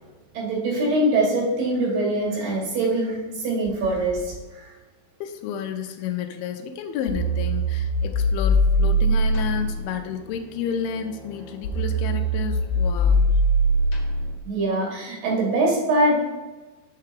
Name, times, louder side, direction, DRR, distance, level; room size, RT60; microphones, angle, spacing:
voice 1, 0.3-4.7 14.5-16.3, right 1 dB, 65° right, -3 dB, 3.9 m, -23 dB
voice 2, 5.2-13.4, left 7 dB, 85° left, 5 dB, 2.6 m, -31 dB
sound 1, 7.1-14.4, equal, 60° left, 2.3 m, -22 dB
6.7 x 4.7 x 4.7 m, 1.2 s
omnidirectional pair, 4.3 m